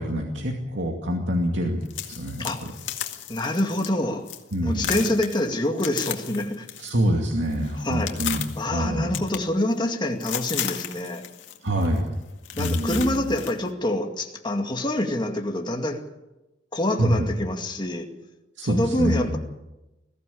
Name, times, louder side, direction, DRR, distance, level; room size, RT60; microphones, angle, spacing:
voice 1, 0.0-1.8 2.1-2.7 4.5-5.0 6.8-9.1 11.6-12.1 12.5-13.3 17.0-17.3 18.6-19.3, equal, 80° right, 1 dB, 2.4 m, -26 dB
sound 1, 1.8-3.9 4.3-4.5 4.8-7.0 7.3-8.7 9.1-9.9 10.2-11.6 11.8-12.0 12.4-13.5, left 10 dB, 85° left, 2.0 m, -34 dB
voice 2, 3.3-4.3 4.6-6.7 7.8-11.2 12.6-16.0 16.7-18.1 18.6-19.4, left 1 dB, 25° left, 3 dB, 2.2 m, -26 dB
21.0 x 15.5 x 8.6 m, 0.99 s
head